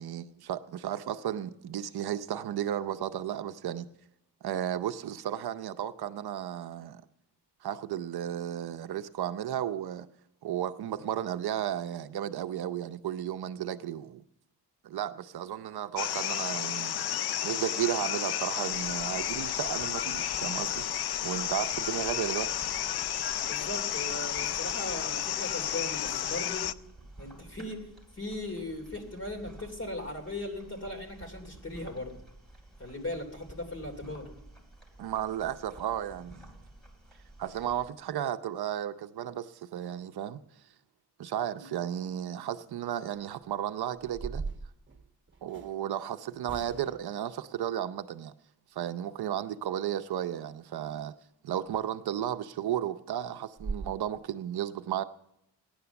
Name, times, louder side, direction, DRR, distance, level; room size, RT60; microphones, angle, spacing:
voice 1, 0.0-3.9 4.4-7.0 7.6-10.1 10.4-14.2 14.8-16.9 17.4-20.8 21.2-22.5 35.0-36.4 37.4-40.4 41.2-44.4 45.4-48.3 48.8-51.1 51.4-55.0, right 10 dB, 70° right, 0.6 m, -34 dB
sound 1, 16.0-26.7, left 11 dB, 70° left, 0.5 m, -32 dB
sound 2, 18.7-37.9, right 1 dB, ahead, 2.8 m, -52 dB
voice 2, 23.5-26.6 27.2-27.9 28.1-32.1 32.8-34.3 41.6-41.7, left 1 dB, 35° left, 3.0 m, -38 dB
sound 3, 43.4-43.5 44.0-45.8 46.4-47.1 51.6-51.8 52.2-52.3 52.7-52.8 53.2-53.3 53.6-53.9, right 4 dB, 30° right, 1.1 m, -39 dB
15.5 x 10.5 x 6.9 m
wide cardioid pair, 165°, 39 cm